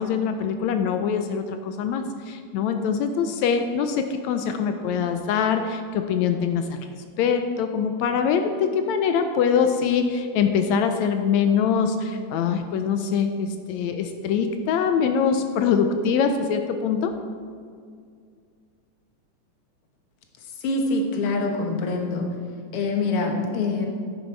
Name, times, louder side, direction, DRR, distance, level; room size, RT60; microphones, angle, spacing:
voice 1, 0.0-6.9 7.2-17.1, left 6 dB, 80° left, 7 dB, 1.7 m, -23 dB
voice 2, 20.6-22.3 22.7-23.9, left 3 dB, 55° left, 3 dB, 1.7 m, -25 dB
11.0 x 9.5 x 4.5 m, 2.1 s
omnidirectional pair, 3.6 m